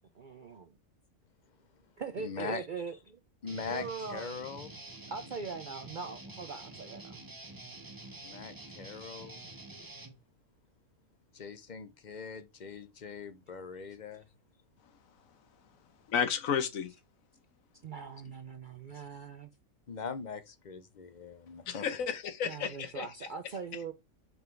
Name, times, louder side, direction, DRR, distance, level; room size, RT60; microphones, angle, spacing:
voice 1, 0.1-0.7 2.0-3.2 3.7-4.3 5.1-7.2 17.8-19.5 22.4-23.9, right 5 dB, 55° right, 0.5 m, -41 dB
voice 2, 2.2-2.7 3.4-4.8 8.2-9.5 11.3-14.2 18.9-19.0 19.9-21.9, left 5 dB, 45° left, 0.6 m, -41 dB
Guitar, 3.4-10.2, right 2 dB, 20° right, 0.8 m, -48 dB
voice 3, 16.1-16.9 21.7-23.1, left 7 dB, 75° left, 1.3 m, -32 dB
5.6 x 5.4 x 4.5 m
omnidirectional pair, 1.5 m